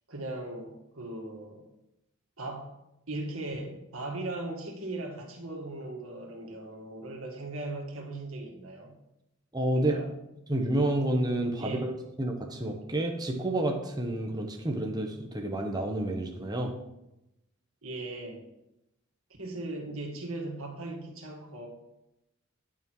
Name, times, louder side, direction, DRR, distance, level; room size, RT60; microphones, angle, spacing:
voice 1, 0.1-1.6 2.4-2.8 3.1-9.0 9.7-10.1 11.6-11.9 17.8-18.4 19.4-21.7, right 2 dB, 75° right, 1 dB, 2.1 m, -38 dB
voice 2, 9.5-10.0 10.5-11.9 12.2-16.7, right 1 dB, 20° right, 2 dB, 0.9 m, -29 dB
10.5 x 5.7 x 4.7 m, 0.89 s
head